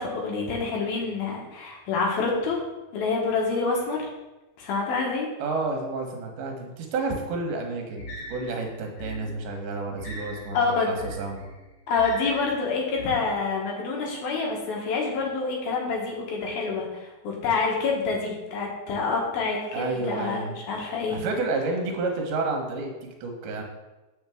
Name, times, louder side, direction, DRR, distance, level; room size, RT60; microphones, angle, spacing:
voice 1, 0.0-2.6 2.9-4.1 4.6-5.3 10.5-10.9 11.9-21.2, left 4 dB, 70° left, -2 dB, 3.0 m, -27 dB
voice 2, 5.4-11.5 19.7-20.6 21.1-23.6, right 3 dB, 75° right, 2 dB, 3.0 m, -30 dB
sound 1, 8.0-13.4, equal, 45° left, 2.4 m, -41 dB
8.0 x 6.6 x 3.5 m, 1.1 s
omnidirectional pair, 4.6 m